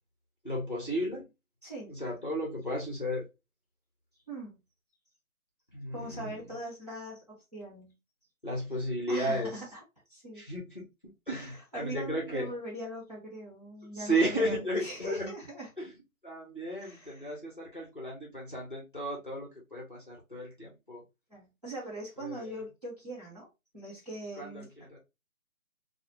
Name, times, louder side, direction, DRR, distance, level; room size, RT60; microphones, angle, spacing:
voice 1, 0.4-1.3 1.9-3.3 5.7-6.5 8.4-9.6 10.3-12.6 13.9-15.3 15.8-21.0 22.2-22.5 24.4-25.0, right 1 dB, 35° left, 0.6 m, -34 dB
voice 2, 1.6-2.0 4.3-4.6 5.9-7.9 9.1-9.8 10.1-10.4 11.7-15.7 16.8-17.3 21.3-23.5 23.7-24.7, right 1 dB, 30° right, 1.0 m, -41 dB
2.3 x 2.0 x 2.8 m
figure-of-eight pair, 175°, 43 cm